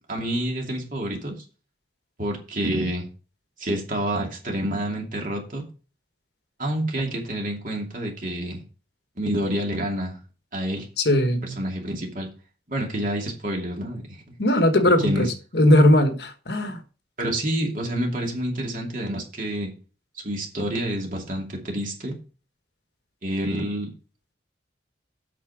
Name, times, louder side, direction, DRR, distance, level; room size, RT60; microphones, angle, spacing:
voice 1, 0.1-1.3 2.2-3.1 3.6-5.6 6.6-8.6 9.2-10.2 10.5-10.9 11.4-12.3 12.7-14.0 15.0-15.3 17.2-19.7 20.2-22.1 23.2-23.9, right 1 dB, 45° right, 2.6 m, -28 dB
voice 2, 11.0-11.6 14.4-15.3 15.5-16.8, left 1 dB, 65° left, 1.3 m, -19 dB
8.4 x 5.9 x 5.0 m
head